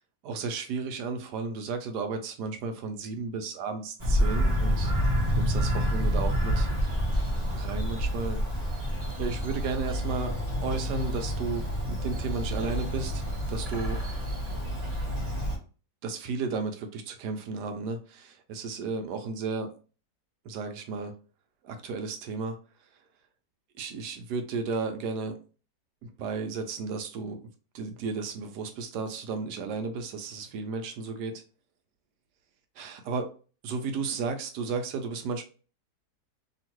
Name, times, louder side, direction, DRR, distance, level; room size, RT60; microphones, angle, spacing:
voice 1, 0.2-4.9 5.4-6.8 7.5-13.2 13.5-14.0 16.0-19.7 20.4-21.1 21.6-22.6 23.8-25.4 26.0-27.4 27.7-31.4 32.8-33.3 33.6-35.4, right 4 dB, 75° right, 6 dB, 1.2 m, -34 dB
Bird vocalization bird call bird song, 4.0-15.6, equal, 30° right, 0.8 m, -28 dB
2.9 x 2.9 x 3.0 m, 0.36 s
omnidirectional pair, 1.8 m